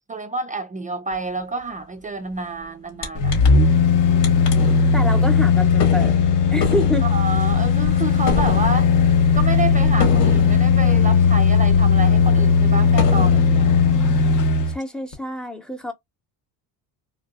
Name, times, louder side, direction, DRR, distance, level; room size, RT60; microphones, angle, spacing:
voice 1, 0.1-3.3 7.0-9.0 9.3-13.7, right 3 dB, 20° right, 0.3 m, -29 dB
sound 1, 3.0-3.1 3.3-3.9 4.2-12.1 12.5-12.6 13.0-13.8, left 3 dB, 75° left, 2.2 m, -30 dB
sound 2, 3.1-14.7 15.1-15.2, left 6 dB, 45° left, 0.9 m, -17 dB
voice 2, 4.9-7.1 14.7-15.9, equal, ahead, 0.8 m, -27 dB
3.5 x 2.6 x 2.4 m
cardioid pair, 110°, 43 cm